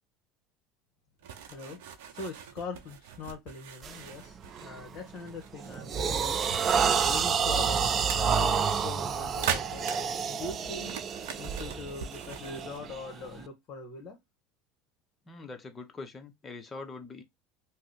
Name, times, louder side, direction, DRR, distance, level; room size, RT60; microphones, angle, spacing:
sound 1, 1.2-12.8, right 8 dB, 80° right, 0.7 m, -41 dB
voice 1, 1.5-9.9 10.3-11.0 11.4-14.2, left 4 dB, 50° left, 1.0 m, -42 dB
sound 2, 3.8-4.1 4.6-4.9 5.3-13.4, right 6 dB, 40° right, 0.3 m, -29 dB
voice 2, 15.3-17.2, left 3 dB, 25° left, 0.7 m, -43 dB
2.8 x 2.0 x 3.8 m
supercardioid pair, 95°, 0 cm